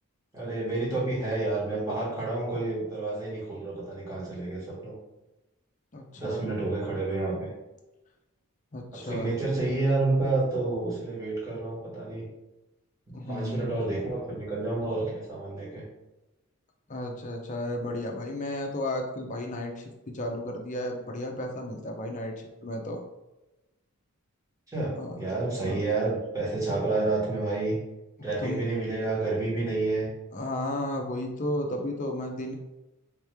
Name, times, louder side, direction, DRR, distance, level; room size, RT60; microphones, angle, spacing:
voice 1, 0.3-5.0 6.2-7.5 8.9-12.2 13.1-15.8 24.7-27.8 28.2-30.1, right 2 dB, 15° right, -7 dB, 1.4 m, -29 dB
voice 2, 5.9-6.5 8.7-9.3 13.1-13.8 16.9-22.3 22.6-23.0 24.9-25.1 25.6-25.8 28.4-28.7 30.3-32.5, left 1 dB, 35° left, 2 dB, 0.5 m, -33 dB
3.6 x 3.1 x 3.3 m, 1.0 s
head